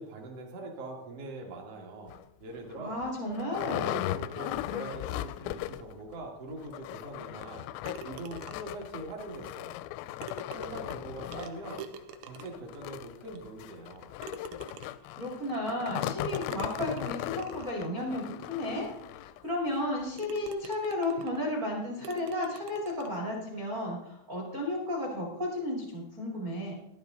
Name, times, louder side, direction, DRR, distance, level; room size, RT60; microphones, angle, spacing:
voice 1, 0.0-3.0 3.5-7.6 8.0-9.8 10.5-11.9 12.2-14.1, right 2 dB, 65° right, 0 dB, 1.5 m, -42 dB
sound 1, 2.1-2.2 2.7-2.8 3.0-6.0 6.2-6.3 6.6-19.4 20.0-20.1 20.5-20.6, left 14 dB, 85° left, 3.2 m, -38 dB
voice 2, 2.8-3.9 15.1-26.7, left 1 dB, 45° right, -1 dB, 1.0 m, -33 dB
sound 2, 7.9-8.8 9.9-10.0 10.2-12.8 13.4-13.5 14.2-15.2 16.3-17.8 18.5-18.6 19.1-19.2 19.7-19.9 20.2-21.5 22.0-23.2, right 6 dB, 80° right, 3.4 m, -46 dB
13.0 x 11.0 x 3.9 m, 0.91 s
omnidirectional pair, 6.0 m